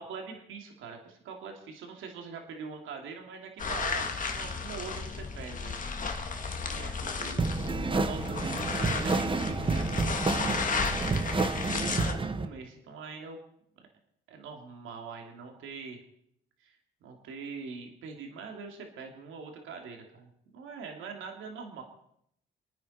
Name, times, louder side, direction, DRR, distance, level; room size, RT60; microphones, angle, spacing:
voice 1, 0.0-5.8 6.6-7.5 7.9-9.9 11.2-13.4 14.3-16.0 16.6-16.8 17.0-21.8, right 5 dB, 80° right, 2 dB, 2.8 m, -43 dB
sound 1, 3.6-12.1, left 4 dB, 40° left, 1.9 m, -33 dB
sound 2, 7.4-12.5, right 3 dB, 25° right, 1.1 m, -30 dB
28.5 x 9.6 x 4.3 m, 0.72 s
cardioid pair, 90°, 20 cm